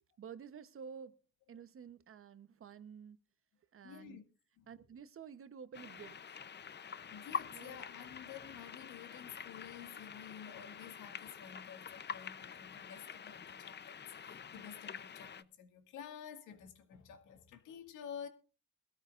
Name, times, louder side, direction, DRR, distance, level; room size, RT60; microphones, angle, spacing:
voice 1, 0.2-1.2 1.5-3.2 3.7-4.2 4.7-6.2 7.5-7.8, right 7 dB, 45° right, 0.9 m, -51 dB
voice 2, 3.8-4.2 4.6-4.7 6.9-18.3, left 8 dB, 90° left, 2.1 m, -51 dB
sound 1, 5.7-15.4, left 7 dB, 35° left, 0.7 m, -46 dB
21.5 x 13.0 x 2.5 m
cardioid pair, 90°, 30 cm